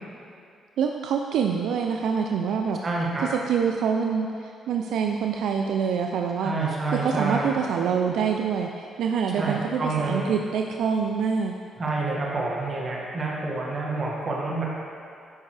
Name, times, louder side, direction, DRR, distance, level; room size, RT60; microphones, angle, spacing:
voice 1, 0.8-2.8 3.3-6.5 7.0-11.5, right 6 dB, 75° right, 3 dB, 0.4 m, -25 dB
voice 2, 2.8-3.3 6.4-7.5 9.3-10.3 11.8-14.7, right 3 dB, 40° right, -4 dB, 1.9 m, -28 dB
12.5 x 5.2 x 3.3 m, 2.4 s
cardioid pair, 90°, 0 cm